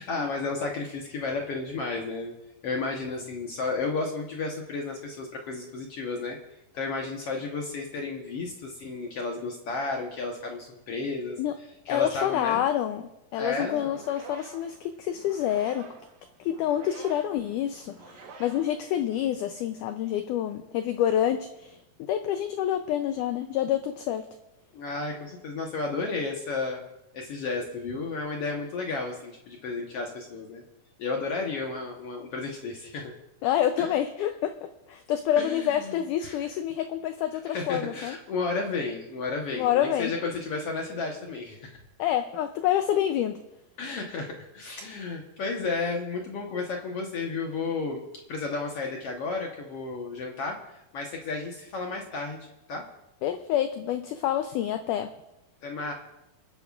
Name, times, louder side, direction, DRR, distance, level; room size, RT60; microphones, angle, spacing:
voice 1, 0.0-2.3 2.6-11.4 11.8-12.6 13.3-14.0 24.7-26.8 27.1-30.6 31.0-33.1 33.8-33.9 35.4-36.4 37.5-41.8 43.8-50.6 50.9-52.4 52.7-52.8 55.6-55.9, left 3 dB, 70° left, 0 dB, 1.4 m, -32 dB
voice 2, 11.9-13.0 13.3-16.0 16.4-24.3 33.4-38.2 39.5-40.1 42.0-43.4 53.2-55.1, left 11 dB, 85° left, 8 dB, 1.8 m, -27 dB
sound 1, 13.7-19.6, right 6 dB, 75° right, 2.7 m, -49 dB
29.0 x 9.7 x 2.4 m, 0.90 s
omnidirectional pair, 4.3 m